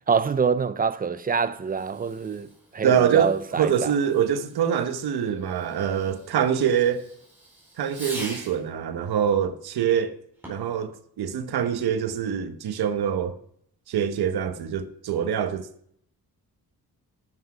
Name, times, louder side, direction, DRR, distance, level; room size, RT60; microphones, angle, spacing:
voice 1, 0.1-2.5 2.7-3.9, right 6 dB, 25° right, 0.4 m, -25 dB
Fireworks, 1.6-8.7 10.3-10.8, right 1 dB, 5° right, 4.5 m, -44 dB
voice 2, 2.8-7.0 7.8-10.2 10.5-13.3 13.9-15.7, right 8 dB, 85° right, 1.1 m, -24 dB
12.0 x 8.0 x 4.9 m
wide cardioid pair, 165°, 37 cm